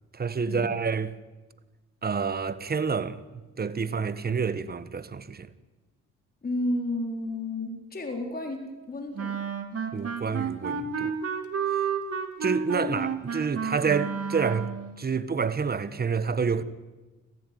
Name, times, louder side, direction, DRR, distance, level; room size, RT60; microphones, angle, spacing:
voice 1, 0.1-1.1 2.0-3.2 3.6-5.5 9.9-11.1 12.4-14.7 15.0-16.6, right 5 dB, 30° right, 1.4 m, -28 dB
voice 2, 6.4-8.6 8.9-9.3, left 1 dB, 30° left, 4.3 m, -31 dB
Wind instrument woodwind instrument, 9.2-14.9, right 6 dB, 50° right, 2.6 m, -31 dB
26.0 x 15.0 x 9.5 m
cardioid pair, 90°, 30 cm